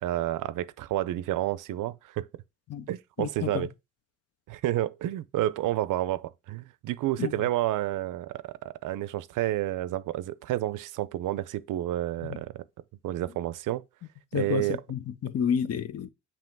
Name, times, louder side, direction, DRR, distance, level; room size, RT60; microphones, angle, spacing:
voice 1, 0.0-2.3 2.9-3.7 4.5-12.5 13.0-13.8 14.3-14.8, right 14 dB, 75° right, 0.5 m, -30 dB
voice 2, 3.2-3.7 7.2-7.3 12.2-12.4 14.3-16.1, left 8 dB, 50° left, 0.6 m, -30 dB
7.6 x 3.1 x 4.5 m
cardioid pair, 140°, 32 cm